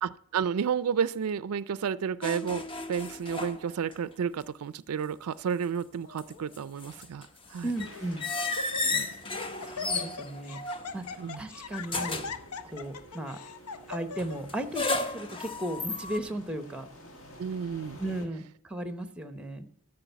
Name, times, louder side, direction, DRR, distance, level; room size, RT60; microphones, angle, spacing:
voice 1, 0.0-7.7 8.8-9.1 11.2-11.4 17.4-18.0, right 7 dB, 75° right, 17 dB, 0.4 m, -31 dB
sound 1, 2.2-4.1 4.4-4.5 5.9-11.3 11.9-12.5 14.2-16.2, left 3 dB, 25° left, 0.7 m, -34 dB
Laughter, 6.0-6.5 7.2-7.3 7.8-8.1 8.4-9.1 9.4-14.4, left 5 dB, 80° left, 0.8 m, -40 dB
voice 2, 7.6-8.3 9.7-10.6 10.9-11.0 11.4-12.2 12.6-13.4 13.9-16.9 18.0-19.7, right 1 dB, 5° right, 9 dB, 0.8 m, -35 dB
sound 2, 7.7-18.3, equal, 60° left, 1.9 m, -51 dB
12.5 x 5.4 x 8.0 m, 0.66 s
head